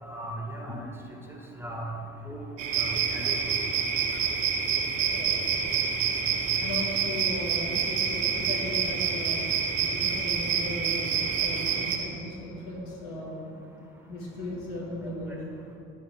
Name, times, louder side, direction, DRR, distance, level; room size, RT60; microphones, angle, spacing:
voice 1, 0.0-0.9 1.3-1.9 2.3-3.5, right 1 dB, 5° right, 0 dB, 2.8 m, -38 dB
sound 1, 2.6-12.0, right 6 dB, 70° right, 1.4 m, -27 dB
voice 2, 4.9-5.6 6.6-9.4 9.9-11.0 11.4-13.5 14.1-15.4, left 2 dB, 75° left, -5 dB, 2.4 m, -37 dB
15.0 x 11.5 x 3.5 m, 2.6 s
figure-of-eight pair, 50°, 40 cm